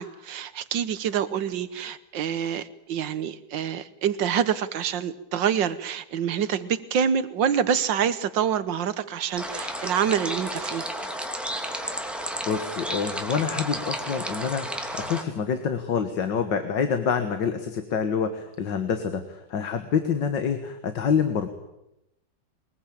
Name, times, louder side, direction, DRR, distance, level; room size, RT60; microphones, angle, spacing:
voice 1, 0.0-10.9, right 8 dB, 75° right, 14 dB, 1.8 m, -26 dB
sound 1, 9.4-15.2, equal, ahead, 2.4 m, -32 dB
voice 2, 12.5-21.5, left 6 dB, 70° left, 8 dB, 2.1 m, -27 dB
23.0 x 21.0 x 8.7 m, 0.87 s
omnidirectional pair, 2.1 m